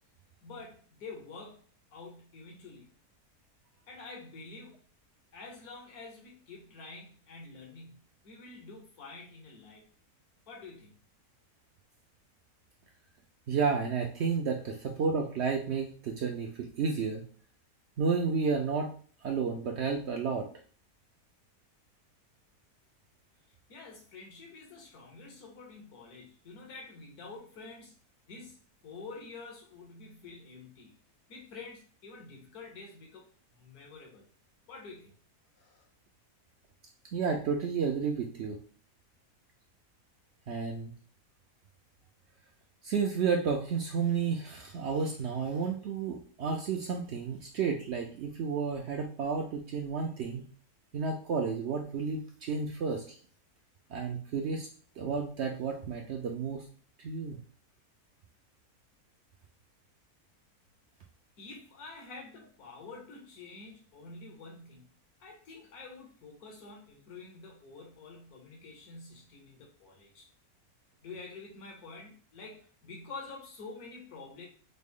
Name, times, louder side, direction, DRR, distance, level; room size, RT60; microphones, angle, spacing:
voice 1, 0.4-3.0 3.9-4.9 5.3-9.9 10.5-11.0 23.7-28.0 28.3-31.0 31.3-34.3 34.7-35.1 35.5-35.8 61.4-70.3 71.0-74.5, left 3 dB, 75° left, -1 dB, 1.6 m, -48 dB
voice 2, 13.5-17.3 18.0-18.9 19.2-20.5 37.1-38.6 40.5-40.9 42.8-50.4 50.9-53.0 53.9-54.7 55.0-56.7 57.0-57.4, right 5 dB, 65° right, 2 dB, 0.7 m, -31 dB
4.1 x 2.0 x 3.5 m, 0.43 s
omnidirectional pair, 1.6 m